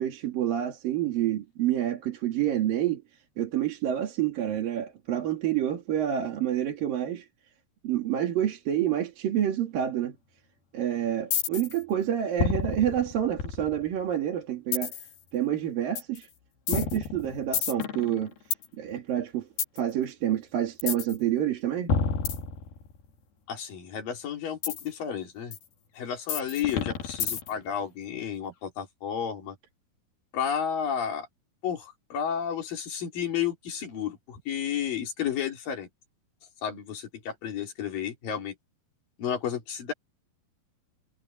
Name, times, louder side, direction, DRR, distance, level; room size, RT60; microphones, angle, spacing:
voice 1, 0.0-3.0 3.4-7.3 7.8-10.2 10.7-15.0 15.3-16.3 16.7-18.3 18.8-19.5 19.7-21.9, right 11 dB, 70° right, 4.1 m, -28 dB
sound 1, 11.3-11.8 12.4-14.0 14.7-15.1 16.0-16.2 16.7-18.7 19.6-19.8 20.8-21.2 21.9-23.1 24.6-24.8 25.5-25.6 26.3-27.7, left 6 dB, 90° left, 4.5 m, -29 dB
voice 2, 23.5-25.6 26.0-29.6 30.3-31.3 31.6-35.9 36.6-38.5 39.2-39.9, left 8 dB, 70° left, 4.9 m, -32 dB
omnidirectional pair, 4.2 m